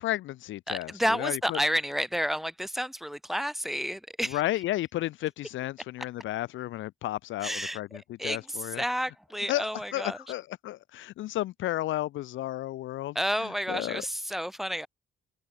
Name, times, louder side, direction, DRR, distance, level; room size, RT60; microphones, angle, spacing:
voice 1, 0.0-1.6 4.3-8.8 9.5-13.1 13.4-14.0, left 15 dB, 80° left, 0.7 m, -33 dB
voice 2, 0.7-4.4 7.4-7.8 8.2-10.2 13.1-14.9, equal, ahead, 6.8 m, -30 dB
cardioid pair, 90°, 20 cm